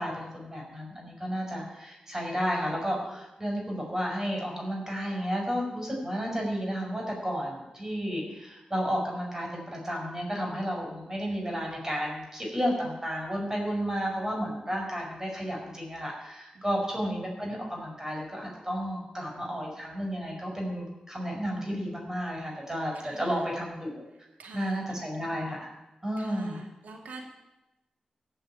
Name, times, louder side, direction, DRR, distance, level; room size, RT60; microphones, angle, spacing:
voice 1, 0.0-24.0 24.5-25.7 26.0-26.6, equal, 20° right, -1 dB, 5.1 m, -32 dB
voice 2, 16.5-17.0 22.9-23.5 24.4-25.0 26.2-27.2, right 3 dB, 85° right, 2 dB, 2.4 m, -47 dB
15.5 x 5.7 x 8.9 m, 0.99 s
cardioid pair, 60°, 3 cm